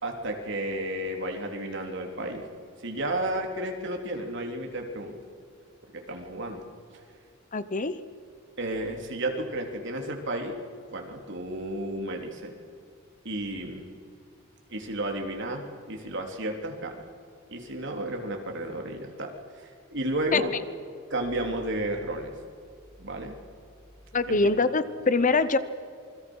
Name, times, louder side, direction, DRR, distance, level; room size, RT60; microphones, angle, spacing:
voice 1, 0.0-2.4 2.8-5.2 5.9-6.6 8.6-10.6 10.9-12.5 13.3-14.0 14.7-17.0 17.5-20.5 21.1-22.3 23.0-23.4 24.3-24.4, right 1 dB, 60° right, 2 dB, 3.4 m, -32 dB
voice 2, 7.5-8.0 20.3-20.4 24.1-25.6, left 3 dB, 35° left, 14 dB, 0.9 m, -24 dB
28.0 x 22.0 x 6.4 m, 2.4 s
head